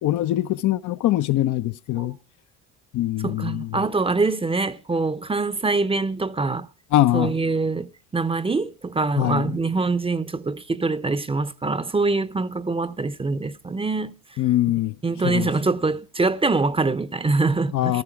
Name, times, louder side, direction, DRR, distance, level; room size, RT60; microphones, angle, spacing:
voice 1, 0.0-2.2 2.9-3.8 6.9-7.3 9.2-9.6 14.4-14.9 15.2-15.5 17.7-18.0, left 14 dB, 50° left, 0.7 m, -22 dB
voice 2, 3.2-6.7 7.1-14.1 15.0-18.0, right 3 dB, 15° right, 0.8 m, -24 dB
15.0 x 13.0 x 4.6 m
supercardioid pair, 80°, 38 cm